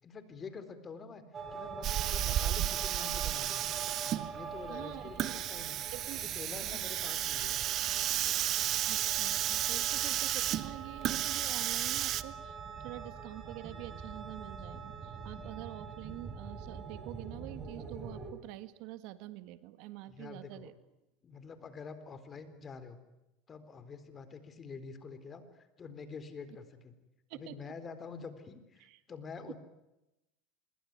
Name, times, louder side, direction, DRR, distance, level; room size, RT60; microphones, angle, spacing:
voice 1, 0.0-1.2 1.5-3.6 4.3-5.8 6.1-7.6 20.1-20.7 21.2-23.0 23.5-26.9 27.3-29.6, left 5 dB, 30° left, 12 dB, 4.0 m, -47 dB
sound 1, 1.3-18.3, right 5 dB, 30° right, 5.9 m, -45 dB
Hiss, 1.8-12.2, right 12 dB, 45° right, 1.3 m, -33 dB
voice 2, 4.7-5.4 5.9-6.2 6.6-6.9 8.9-20.7 27.3-27.5 28.8-29.0, right 16 dB, 65° right, 12 dB, 1.8 m, -46 dB
26.5 x 22.5 x 9.6 m, 0.93 s
supercardioid pair, 110°, 0 cm